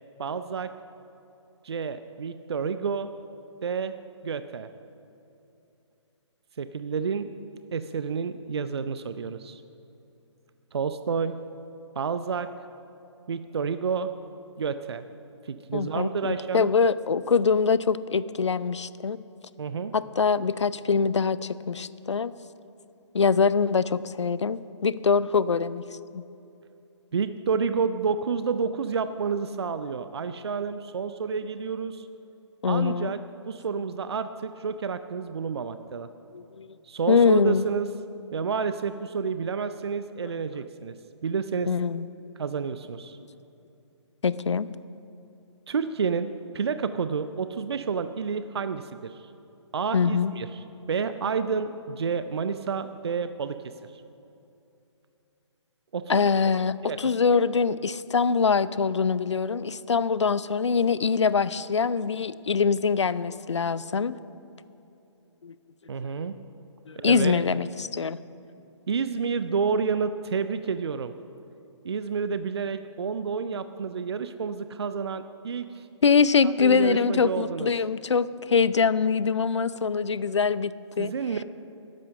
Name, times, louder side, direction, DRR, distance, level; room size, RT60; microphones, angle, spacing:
voice 1, 0.2-0.7 1.6-3.1 3.6-3.9 4.2-4.7 6.6-7.3 7.7-9.6 10.7-11.4 11.9-12.5 13.3-14.1 14.6-15.0 15.5-16.7 19.6-19.9 27.1-32.1 32.7-33.2 33.5-36.1 36.9-37.9 38.3-40.9 41.2-41.7 42.4-43.2 45.7-49.2 49.7-54.0 55.9-56.2 56.8-57.0 65.9-66.4 67.0-67.4 68.9-71.1 71.8-75.9 76.4-77.7 81.0-81.4, right 5 dB, 60° right, 11 dB, 0.5 m, -29 dB
voice 2, 15.7-19.2 19.9-22.3 23.1-25.8 26.1-26.2 32.6-33.1 36.3-36.7 37.1-37.7 41.7-42.1 44.2-44.7 49.9-50.3 56.1-64.1 65.4-65.6 66.9-68.2 76.0-81.1, left 5 dB, 70° left, 17 dB, 0.5 m, -24 dB
12.5 x 10.5 x 6.6 m, 2.8 s
figure-of-eight pair, 135°, 16 cm